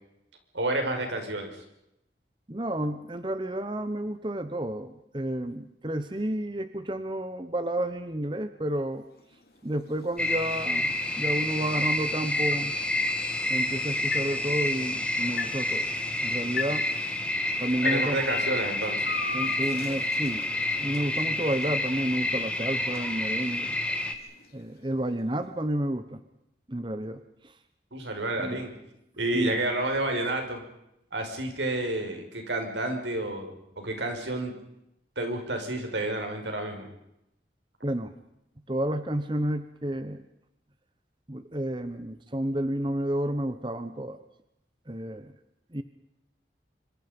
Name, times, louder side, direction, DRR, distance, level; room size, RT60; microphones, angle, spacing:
voice 1, 0.5-1.5 17.8-19.1 27.9-28.7 29.2-30.6 31.1-34.5 35.2-36.9, right 2 dB, 85° right, 4 dB, 6.0 m, -30 dB
voice 2, 2.5-9.0 9.6-12.7 13.5-15.9 16.2-16.9 17.6-18.2 19.3-20.5 20.8-23.7 24.5-26.2 26.7-27.6 28.4-28.6 29.3-29.6 37.8-38.1 38.7-40.2 41.3-44.2 44.9-45.3 45.7-45.8, right 1 dB, 25° right, 10 dB, 1.1 m, -31 dB
sound 1, 9.0-25.2, left 4 dB, 55° left, 3.1 m, -41 dB
sound 2, 10.2-24.2, left 1 dB, 5° left, 2.0 m, -29 dB
26.0 x 26.0 x 5.4 m, 0.83 s
head